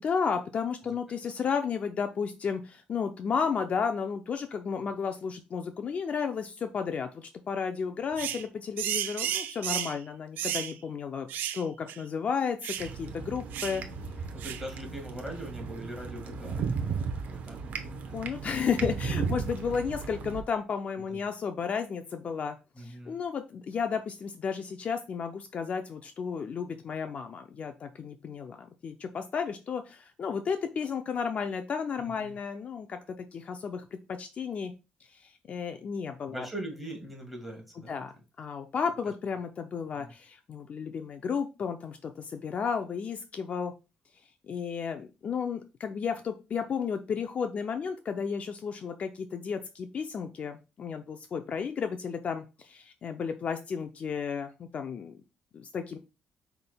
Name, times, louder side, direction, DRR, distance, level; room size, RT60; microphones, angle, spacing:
voice 1, 0.0-11.3 11.5-13.8 18.1-34.7 35.1-36.5 37.9-38.1 38.4-43.7 44.5-55.2 55.5-56.0, left 6 dB, 50° left, 7 dB, 0.4 m, -33 dB
sound 1, 8.2-8.4 8.8-10.0 10.4-10.7 11.3-11.6 11.9-12.0 12.6-12.9 13.5-13.8 14.4-14.7, right 10 dB, 85° right, 0.4 m, -33 dB
sound 2, 12.8-20.4, right 5 dB, 65° right, 0.8 m, -35 dB
voice 2, 14.3-18.2 21.1-21.2 22.7-23.2 32.0-32.4 36.3-38.0 40.0-40.1, right 1 dB, ahead, 1 dB, 1.6 m, -42 dB
5.7 x 3.4 x 2.2 m, 0.29 s
cardioid pair, 100°, 3 cm